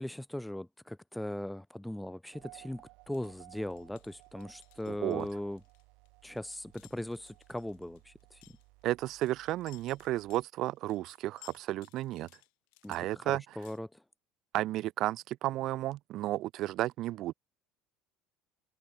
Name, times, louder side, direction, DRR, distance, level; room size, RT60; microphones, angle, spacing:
voice 1, 0.0-5.6 6.2-8.4 12.8-14.0, left 1 dB, 5° left, 0.4 m, -39 dB
sound 1, 2.3-10.4, right 27 dB, 65° right, 4.9 m, -59 dB
sound 2, 3.1-13.8, left 40 dB or more, 75° left, 4.5 m, -60 dB
voice 2, 4.9-5.3 8.8-12.3 12.9-13.4 14.5-17.3, right 15 dB, 45° right, 0.5 m, -33 dB
open air
cardioid pair, 175°, 0 cm